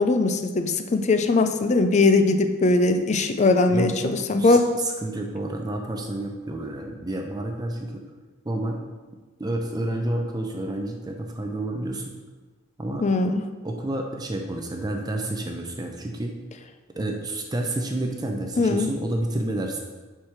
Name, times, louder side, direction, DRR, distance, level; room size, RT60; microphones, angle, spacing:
voice 1, 0.0-4.6 13.0-13.4 18.6-18.9, left 3 dB, 35° left, 8 dB, 0.4 m, -20 dB
voice 2, 3.7-4.6 5.0-8.0 8.4-8.8 9.4-12.0 12.8-13.0 13.6-16.4 16.9-19.8, right 1 dB, 20° right, 2 dB, 0.5 m, -29 dB
4.9 x 4.5 x 5.9 m, 1.3 s
head